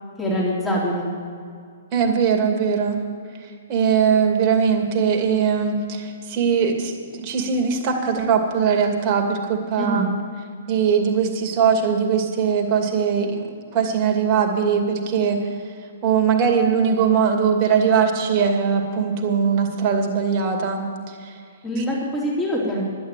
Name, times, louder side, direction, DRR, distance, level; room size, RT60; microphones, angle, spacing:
voice 1, 0.2-1.1 9.8-10.1 21.6-22.8, equal, 10° left, -5 dB, 3.7 m, -24 dB
voice 2, 1.9-3.0 3.7-10.1 10.7-13.5 13.7-15.4 16.0-20.8 21.2-21.3 21.8-21.9, right 6 dB, 35° right, 4 dB, 2.4 m, -20 dB
11.5 x 9.3 x 8.9 m, 2.2 s
figure-of-eight pair, 120°, 0 cm